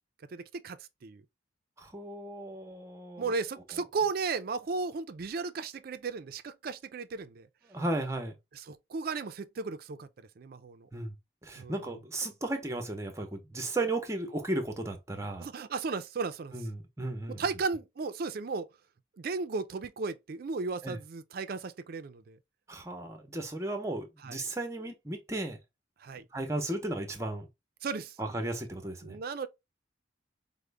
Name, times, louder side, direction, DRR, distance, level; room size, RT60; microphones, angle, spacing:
voice 1, 0.3-1.2 3.2-7.5 8.7-10.9 11.6-11.8 15.4-16.5 17.4-18.7 19.2-22.4 24.2-24.4 26.0-26.2 27.8-28.2 29.0-29.5, right 4 dB, 50° right, 0.4 m, -35 dB
voice 2, 1.8-3.3 7.7-8.3 10.9-11.1 11.4-15.5 16.5-17.4 20.8-21.0 22.7-25.6 26.3-27.5 28.2-29.2, right 2 dB, 15° right, 0.7 m, -35 dB
4.9 x 2.1 x 3.3 m
head